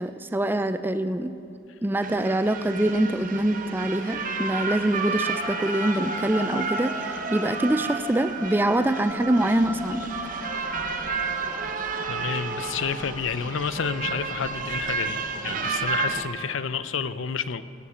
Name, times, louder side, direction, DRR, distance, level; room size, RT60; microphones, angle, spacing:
voice 1, 0.0-1.3 1.8-10.1, right 1 dB, 10° right, 10 dB, 0.4 m, -24 dB
sound 1, 2.0-16.2, right 4 dB, 45° right, 0.9 m, -31 dB
sound 2, 5.2-14.7, right 1 dB, 85° right, 3.0 m, -37 dB
voice 2, 12.1-17.6, left 6 dB, 75° left, 14 dB, 0.5 m, -30 dB
17.5 x 7.1 x 8.7 m, 2.6 s
head